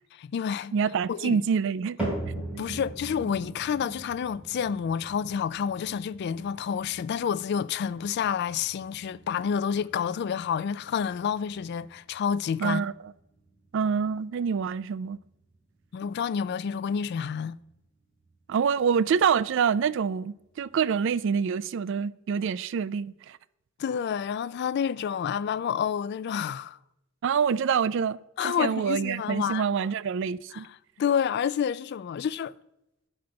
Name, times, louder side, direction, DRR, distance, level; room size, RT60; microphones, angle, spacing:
voice 1, 0.1-0.7 1.1-1.4 2.3-12.8 15.9-17.6 23.8-26.8 28.4-29.6 30.5-30.7 31.0-32.5, left 7 dB, 55° left, 0.3 m, -29 dB
voice 2, 0.7-2.0 2.3-2.4 12.6-13.1 13.7-15.2 18.5-23.4 27.2-30.7, right 6 dB, 65° right, 0.3 m, -26 dB
sound 1, 2.0-18.3 18.6-19.1 19.7-19.8 20.7-20.8, right 2 dB, 5° right, 3.0 m, -42 dB
10.5 x 4.3 x 6.2 m
head